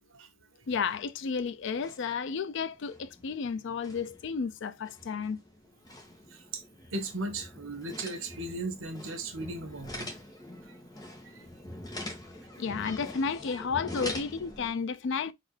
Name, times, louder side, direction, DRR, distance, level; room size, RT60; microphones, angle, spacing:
voice 1, 0.7-5.4 12.6-15.3, left 5 dB, 65° left, 0.4 m, -32 dB
sound 1, 0.7-1.4 1.6-2.2 2.6-14.7, left 1 dB, 20° left, 1.5 m, -44 dB
voice 2, 6.3-6.6 6.9-10.1 10.7-10.8 11.2-11.5, right 2 dB, 80° right, 1.1 m, -37 dB
4.2 x 3.9 x 3.2 m
head